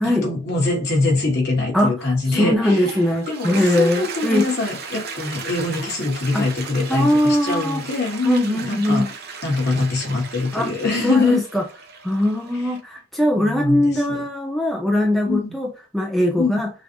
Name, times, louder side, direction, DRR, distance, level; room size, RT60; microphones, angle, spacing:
voice 1, 0.0-3.0 3.3-9.1 9.4-11.4 13.3-13.8 14.1-14.2 15.3-15.5 16.4-16.6, left 3 dB, 50° left, 1.7 m, -23 dB
voice 2, 1.7-4.4 6.3-6.5 6.9-7.8 8.2-9.1 10.5-10.7 11.0-11.7 12.0-16.7, left 1 dB, ahead, 0.5 m, -21 dB
Toilet flush, 2.6-12.8, right 4 dB, 45° right, 0.8 m, -35 dB
6.0 x 2.5 x 2.9 m
head